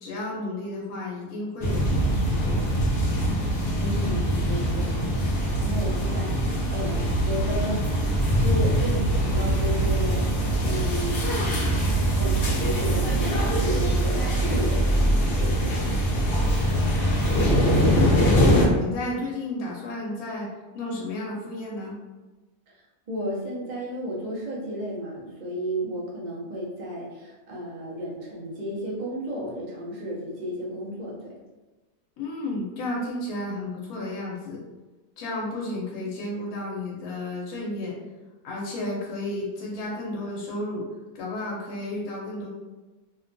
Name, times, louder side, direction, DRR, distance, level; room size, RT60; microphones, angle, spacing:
voice 1, 0.0-2.6 17.9-20.5 20.7-22.0 32.2-34.6 35.2-38.0 38.4-40.9 41.1-42.5, left 2 dB, 85° left, -4 dB, 1.1 m, -32 dB
sound 1, 1.6-18.7, right 1 dB, 55° left, 0.6 m, -23 dB
voice 2, 3.8-7.8 8.4-10.3 10.6-11.3 12.1-17.1 22.7-22.8 23.1-31.3, equal, 60° right, -5 dB, 0.4 m, -33 dB
2.7 x 2.2 x 2.5 m, 1.2 s
omnidirectional pair, 1.5 m